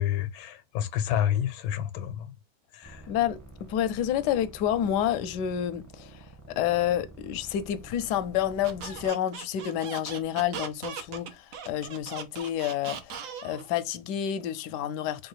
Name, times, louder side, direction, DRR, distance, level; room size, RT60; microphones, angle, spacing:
voice 1, 0.0-2.3 2.7-3.0, left 10 dB, 90° left, 1.5 m, -29 dB
sound 1, 2.8-9.1, right 1 dB, 15° right, 0.7 m, -49 dB
voice 2, 3.1-15.3, left 10 dB, 75° left, 1.0 m, -29 dB
Squeak, 8.6-13.7, right 6 dB, 65° right, 0.8 m, -39 dB
4.7 x 2.3 x 4.7 m
omnidirectional pair, 2.2 m